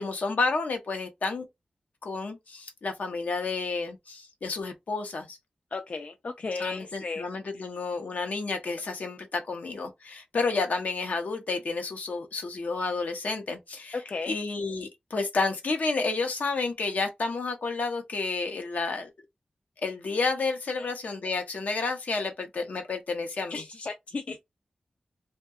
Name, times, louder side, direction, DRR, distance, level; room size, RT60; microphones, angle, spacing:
voice 1, 0.0-1.4 2.0-5.4 6.6-14.0 14.3-19.1 19.8-23.6, left 3 dB, 70° left, 0.7 m, -30 dB
voice 2, 5.7-7.3 7.5-7.6 13.9-14.3 20.8-20.9 23.5-24.4, left 4 dB, 50° left, 0.3 m, -35 dB
2.7 x 2.2 x 2.3 m
wide cardioid pair, 105°, 3 cm